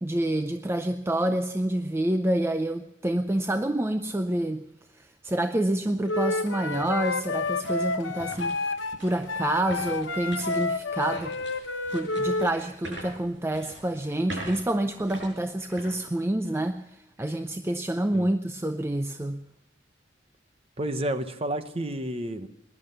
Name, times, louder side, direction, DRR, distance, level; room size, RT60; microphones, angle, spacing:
voice 1, 0.0-4.7 4.9-8.6 9.0-11.4 11.9-19.4, right 1 dB, 15° right, 8 dB, 0.5 m, -28 dB
sound 1, 5.3-5.4 5.9-16.8 17.2-17.3 17.9-18.2, right 1 dB, 80° right, 7.2 m, -45 dB
Wind instrument woodwind instrument, 6.0-12.5, left 3 dB, 90° left, 1.0 m, -30 dB
voice 2, 20.8-22.5, right 1 dB, 30° right, 10 dB, 1.0 m, -30 dB
19.5 x 11.0 x 6.7 m, 0.85 s
head